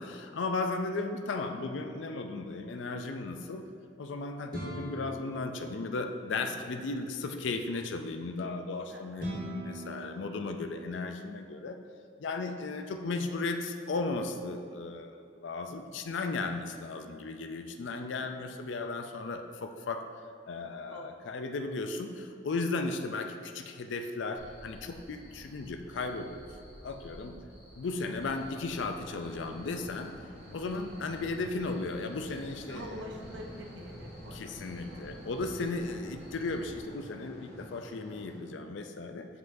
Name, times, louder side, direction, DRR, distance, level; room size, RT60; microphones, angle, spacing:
voice 1, 0.0-3.6 4.0-9.3 9.6-11.8 12.2-20.0 20.5-26.5 26.8-27.3 27.8-30.1 30.5-33.1 34.3-39.3, left 3 dB, 70° left, 6 dB, 0.4 m, -35 dB
sound 1, 4.5-6.5 9.2-11.3, equal, 45° right, 1.4 m, -41 dB
voice 2, 8.9-9.3 12.4-12.7 20.9-21.3 27.2-27.5 30.9-31.2 32.7-35.1 35.6-35.8, equal, 75° right, 1 dB, 0.6 m, -48 dB
Cricket, 24.4-36.9, equal, 10° right, 1.3 m, -53 dB
sound 2, 28.1-38.4, equal, 30° left, 1.2 m, -48 dB
7.9 x 5.2 x 2.7 m, 2.5 s
head